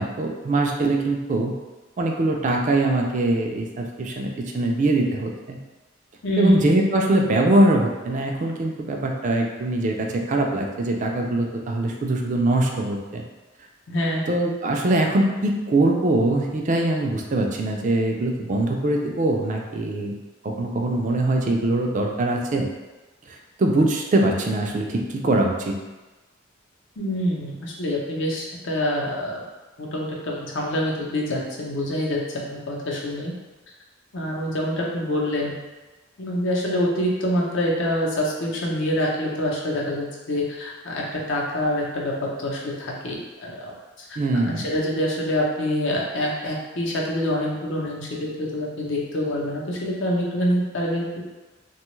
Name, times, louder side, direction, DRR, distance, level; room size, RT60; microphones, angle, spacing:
voice 1, 0.0-1.5 2.0-5.6 6.4-13.2 14.3-20.1 20.4-22.7 23.6-25.8 44.2-44.6, right 2 dB, 40° right, 1 dB, 0.4 m, -22 dB
voice 2, 6.2-6.6 13.9-14.2 27.0-29.4 29.8-33.3 34.1-35.5 36.2-44.2 44.6-51.2, left 1 dB, 65° left, -3 dB, 0.7 m, -26 dB
2.9 x 2.3 x 3.0 m, 1.2 s
head